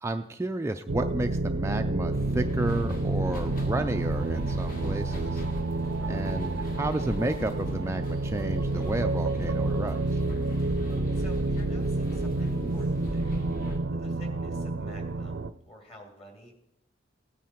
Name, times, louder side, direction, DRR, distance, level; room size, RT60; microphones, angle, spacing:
voice 1, 0.0-5.4 6.1-10.2, right 1 dB, 15° right, 6 dB, 0.3 m, -31 dB
sound 1, 0.9-15.5, right 2 dB, 90° right, 0.6 m, -29 dB
sound 2, 2.1-13.8, equal, 50° left, 2.0 m, -37 dB
voice 2, 5.8-6.2 11.1-13.4 13.9-15.4 15.6-16.5, left 1 dB, 30° left, 2 dB, 2.7 m, -50 dB
16.5 x 9.3 x 4.5 m, 0.85 s
head